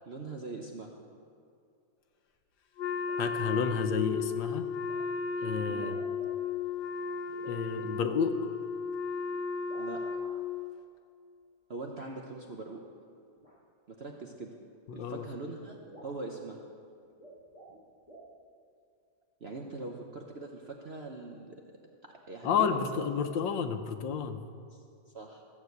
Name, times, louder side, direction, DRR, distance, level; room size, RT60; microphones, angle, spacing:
voice 1, 0.1-1.0 5.7-6.0 9.8-10.0 11.7-12.8 13.9-14.6 14.9-16.6 19.4-21.6 22.0-23.2 24.7-24.8 25.1-25.4, right 3 dB, 45° right, 1 dB, 0.9 m, -42 dB
sound 1, 2.3-2.4 3.0-3.2 3.5-3.8 4.9-5.0 5.7-6.6 7.3-7.6 9.6-10.3 12.0-12.1 13.4-13.5 14.7-14.8 15.2-15.3 15.5-15.6 15.8-16.2 17.1-17.8 18.1-18.3, right 2 dB, 20° left, 3.8 m, -52 dB
Wind instrument woodwind instrument, 2.8-10.7, left 5 dB, 70° left, 1.5 m, -34 dB
voice 2, 3.2-4.7 5.4-6.0 7.5-8.3 14.9-15.2 22.4-24.4, left 7 dB, 90° left, 8 dB, 1.5 m, -31 dB
14.5 x 7.3 x 8.0 m, 2.4 s
omnidirectional pair, 1.9 m